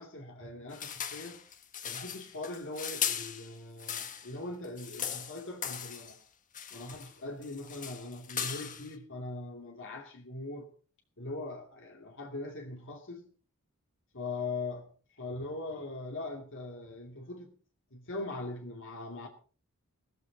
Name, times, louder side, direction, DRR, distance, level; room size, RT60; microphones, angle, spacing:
voice 1, 0.0-1.4 1.8-6.2 6.7-10.7 11.2-13.2 14.1-14.9 15.1-17.5 17.9-19.3, left 2 dB, 60° left, 2.3 m, -41 dB
sound 1, 0.7-4.3 4.6-6.2 6.5-7.1 7.4-8.9, left 8 dB, 35° left, 1.5 m, -38 dB
17.0 x 13.5 x 4.0 m
head